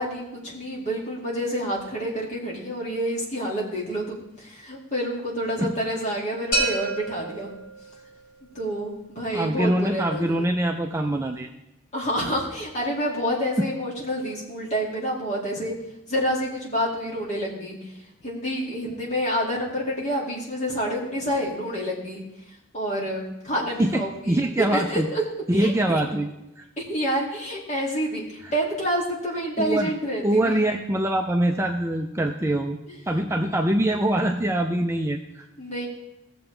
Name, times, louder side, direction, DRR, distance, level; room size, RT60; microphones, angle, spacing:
voice 1, 0.0-7.5 8.5-10.5 11.9-15.7 16.1-17.8 18.2-22.2 22.7-25.2 25.5-26.0 26.8-30.6 35.6-35.9, equal, 35° left, -4 dB, 2.4 m, -28 dB
sound 1, 6.5-8.4, right 2 dB, 80° left, 4.6 m, -28 dB
voice 2, 9.3-11.5 13.6-13.7 23.8-25.1 25.5-26.3 26.6-26.7 28.4-28.5 29.6-29.9 30.2-32.8 33.1-35.4, right 1 dB, 15° right, 3 dB, 0.4 m, -24 dB
16.5 x 7.0 x 3.3 m, 0.90 s
head